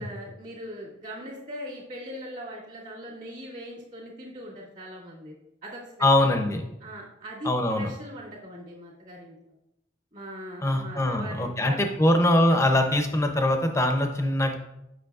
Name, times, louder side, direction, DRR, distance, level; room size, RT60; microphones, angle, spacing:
voice 1, 0.0-5.3 5.6-6.4 6.8-7.5 7.8-9.5 10.1-11.8, equal, 45° right, -6 dB, 2.1 m, -40 dB
voice 2, 6.0-6.6 7.4-7.9 10.6-14.5, left 1 dB, 15° left, 4 dB, 0.5 m, -22 dB
7.7 x 6.0 x 2.4 m, 0.87 s
head